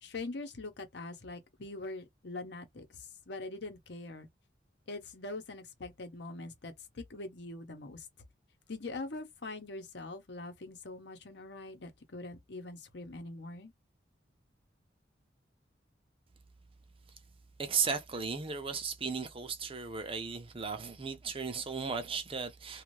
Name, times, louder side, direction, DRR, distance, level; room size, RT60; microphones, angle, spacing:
voice 1, 0.0-2.9 3.3-4.3 4.9-8.0 8.7-13.7, left 2 dB, 65° left, 0.9 m, -43 dB
voice 2, 17.6-22.8, right 5 dB, 30° right, 0.6 m, -35 dB
2.6 x 2.4 x 3.1 m
head